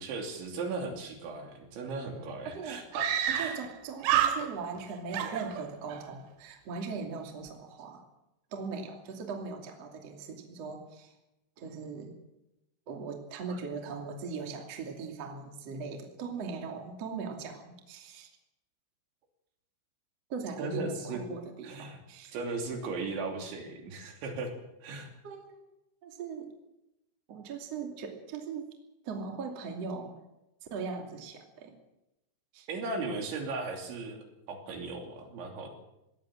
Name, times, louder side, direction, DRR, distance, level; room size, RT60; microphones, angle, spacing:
voice 1, 0.0-3.5 13.5-13.6 20.6-21.2 21.6-22.0 22.3-24.5 24.8-25.1 32.7-34.2 34.5-35.7, right 3 dB, 65° right, 3 dB, 5.1 m, -37 dB
Screaming, 1.8-1.9 2.1-2.2 2.9-3.7 4.0-4.8 5.1-6.0, right 10 dB, 85° right, 4.4 m, -29 dB
voice 2, 3.3-8.0 8.5-11.1 11.6-12.1 12.9-18.3 20.3-22.3 25.2-25.6 26.0-26.5 27.3-28.6 29.0-30.1 30.7-31.7 32.5-32.7, right 5 dB, 40° right, 3 dB, 3.0 m, -39 dB
21.0 x 17.5 x 7.7 m, 0.91 s
omnidirectional pair, 5.9 m